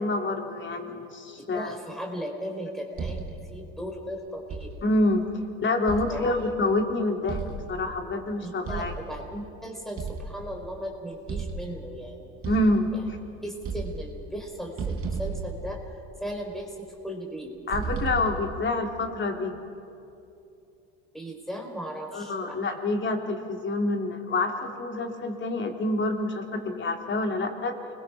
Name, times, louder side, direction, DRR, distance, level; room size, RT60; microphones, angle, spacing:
voice 1, 0.0-1.8 4.8-5.3 5.6-7.4 7.7-8.9 12.4-13.2 17.7-19.5 22.1-27.7, left 2 dB, 35° left, 4 dB, 3.2 m, -27 dB
voice 2, 1.5-4.8 6.1-6.3 8.4-12.4 12.9-13.0 13.4-15.8 16.2-17.5 21.1-22.8, equal, ahead, 2 dB, 3.9 m, -37 dB
sound 1, 3.0-3.6 4.5-5.1 5.9-6.7 7.3-8.1 8.7-9.3 10.0-10.7 11.3-12.0 12.4-13.3 13.6-14.4 14.8-16.3 17.7-18.7, right 4 dB, 40° right, 3.7 m, -35 dB
29.0 x 21.5 x 5.9 m, 2.7 s
hypercardioid pair, 80°, 34 cm